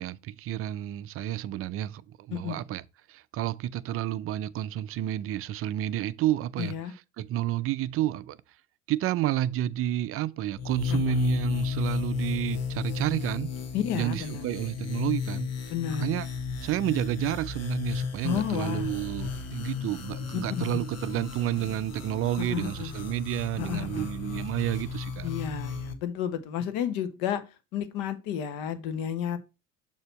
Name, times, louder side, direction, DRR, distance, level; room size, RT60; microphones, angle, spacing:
voice 1, 0.0-2.0 2.3-2.8 3.1-6.7 7.2-8.4 8.9-13.5 13.9-15.5 16.0-16.3 16.6-25.3, right 13 dB, 35° right, 0.4 m, -30 dB
voice 2, 6.6-6.9 10.9-11.0 13.7-14.4 15.7-16.1 18.2-18.9 20.5-20.8 22.5-22.9 23.6-24.1 25.2-27.4 27.7-29.4, left 9 dB, 60° left, 1.0 m, -31 dB
sound 1, 10.6-25.9, left 6 dB, 40° left, 1.2 m, -34 dB
sound 2, 18.2-25.0, left 4 dB, 85° left, 1.1 m, -48 dB
6.6 x 2.9 x 5.6 m
hypercardioid pair, 70°, 40 cm